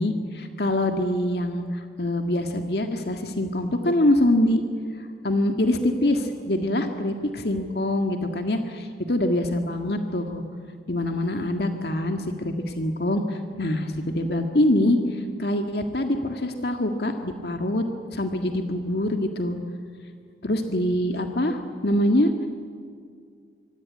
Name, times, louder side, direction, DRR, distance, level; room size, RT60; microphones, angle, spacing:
voice 1, 0.0-4.6 5.2-10.4 10.9-15.0 15.4-17.8 18.1-19.6 20.4-22.3, left 1 dB, 70° left, 5 dB, 1.8 m, -24 dB
25.0 x 24.5 x 9.5 m, 2.2 s
head